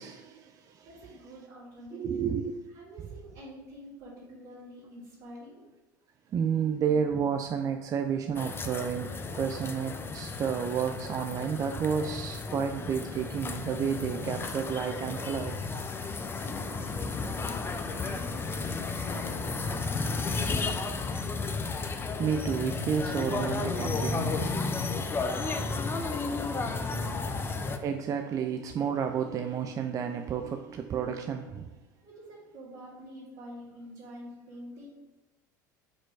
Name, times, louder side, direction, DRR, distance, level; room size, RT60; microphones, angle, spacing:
voice 1, 0.0-0.9 1.9-2.6 6.3-15.5 22.2-24.7 27.8-31.8, right 7 dB, 35° right, 6 dB, 0.4 m, -31 dB
voice 2, 0.8-2.3 2.7-5.6 16.4-20.9 25.1-27.3 32.0-34.9, equal, 60° right, -8 dB, 1.9 m, -47 dB
sound 1, 8.4-27.8, left 4 dB, 20° left, 0.6 m, -33 dB
5.0 x 4.4 x 4.5 m, 1.1 s
hypercardioid pair, 80°, 10 cm